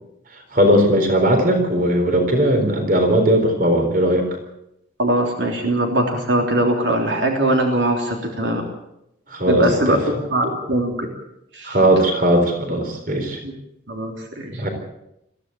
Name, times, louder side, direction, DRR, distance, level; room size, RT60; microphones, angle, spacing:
voice 1, 0.5-4.3 9.3-9.9 11.6-13.4 14.5-14.7, equal, 45° right, 5 dB, 4.0 m, -18 dB
voice 2, 5.0-8.6 9.5-10.0 10.3-11.1 11.5-11.8 13.4-13.5 13.9-14.7, right 1 dB, 70° right, 1 dB, 3.4 m, -21 dB
21.5 x 15.0 x 8.5 m, 0.83 s
head